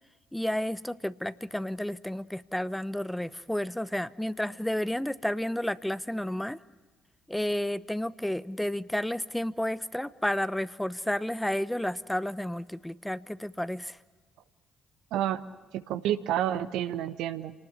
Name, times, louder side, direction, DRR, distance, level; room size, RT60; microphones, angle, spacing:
voice 1, 0.3-6.6 7.3-14.0, left 1 dB, 5° left, 16 dB, 0.8 m, -31 dB
voice 2, 15.1-15.4 15.7-17.5, right 11 dB, 65° right, 10 dB, 1.2 m, -29 dB
28.0 x 19.5 x 8.1 m, 1.3 s
figure-of-eight pair, 45°, 0 cm